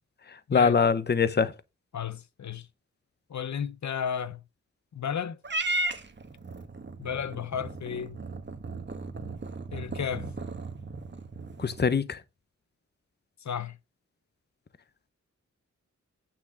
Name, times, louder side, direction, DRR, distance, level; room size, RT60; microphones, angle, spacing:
voice 1, 0.5-1.5 11.6-12.2, left 5 dB, 35° left, 0.7 m, -23 dB
voice 2, 1.9-2.7 3.3-4.4 4.9-5.4 7.0-8.2 9.7-10.3 13.4-13.8, left 8 dB, 70° left, 0.7 m, -33 dB
Purr / Meow, 5.4-11.9, right 2 dB, 40° right, 1.2 m, -36 dB
8.6 x 5.9 x 4.9 m
wide cardioid pair, 130°, 30 cm